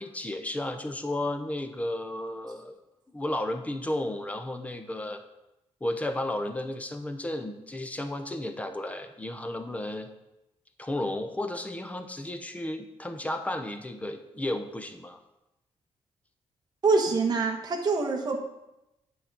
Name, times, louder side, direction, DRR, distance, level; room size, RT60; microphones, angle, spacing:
voice 1, 0.0-2.7 3.1-5.2 5.8-10.1 10.8-15.2, left 1 dB, 10° left, 7 dB, 0.7 m, -33 dB
voice 2, 16.8-18.4, right 4 dB, 35° right, 1 dB, 1.2 m, -25 dB
9.9 x 4.1 x 6.0 m, 0.92 s
wide cardioid pair, 145°, 11 cm